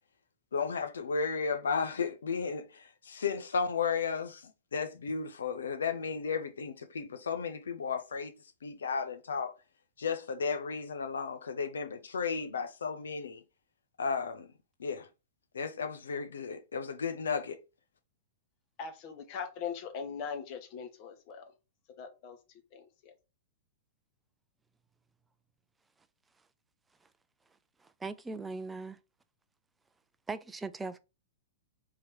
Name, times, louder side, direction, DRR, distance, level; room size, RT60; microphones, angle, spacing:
voice 1, 0.5-8.3 8.6-9.5 10.0-13.4 14.0-14.5 14.8-15.1 15.5-17.6, left 5 dB, 80° left, 0.5 m, -34 dB
voice 2, 18.8-21.5 22.0-23.1, left 6 dB, 45° left, 1.1 m, -41 dB
voice 3, 27.8-29.0 30.3-31.0, right 3 dB, 10° right, 0.4 m, -39 dB
3.8 x 3.0 x 4.4 m
hypercardioid pair, 110°, 0 cm